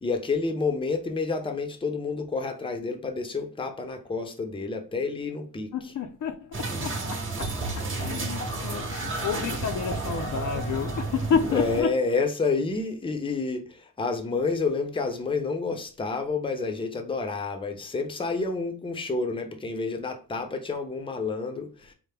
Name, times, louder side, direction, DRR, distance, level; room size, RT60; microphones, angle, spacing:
voice 1, 0.0-5.7 11.5-21.9, left 4 dB, 15° left, 0.6 m, -29 dB
voice 2, 5.7-12.0, left 6 dB, 60° left, 0.5 m, -30 dB
sound 1, 6.5-11.8, right 3 dB, 35° right, 0.9 m, -31 dB
4.4 x 2.1 x 3.3 m
cardioid pair, 100°, 34 cm